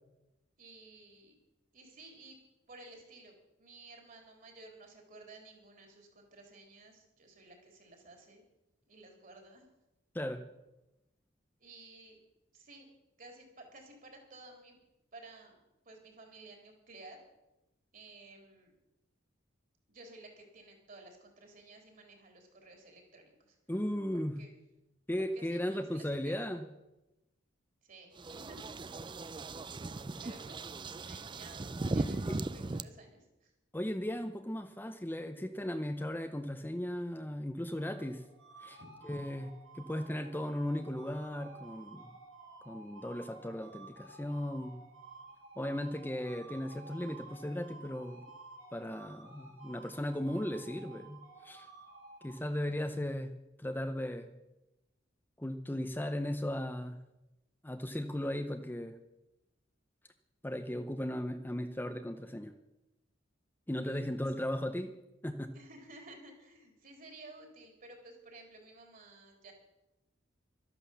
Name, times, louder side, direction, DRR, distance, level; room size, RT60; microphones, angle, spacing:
voice 1, 0.6-1.4 1.7-2.4 2.7-8.4 8.9-9.7 11.6-12.2 12.5-12.9 13.2-14.8 15.1-15.6 15.9-17.2 17.9-18.7 19.9-23.6 24.1-24.5 25.2-26.5 27.8-28.7 30.2-30.6 31.0-33.5 38.8-38.9 63.8-64.0 65.5-69.5, right 2 dB, 50° right, 3 dB, 3.8 m, -54 dB
voice 2, 23.7-24.4 25.1-26.6 32.3-32.4 33.7-38.2 38.6-39.5 39.7-42.1 42.6-44.8 45.6-48.2 48.7-51.7 52.2-53.3 53.6-54.3 55.4-57.0 57.6-59.0 60.4-62.5 63.7-64.9 65.2-65.5, left 1 dB, 10° left, 7 dB, 0.7 m, -36 dB
sound 1, 28.2-32.8, right 2 dB, 25° right, 0.5 m, -38 dB
sound 2, 37.6-52.9, right 3 dB, 80° right, 2.9 m, -53 dB
12.5 x 11.0 x 7.2 m, 0.96 s
head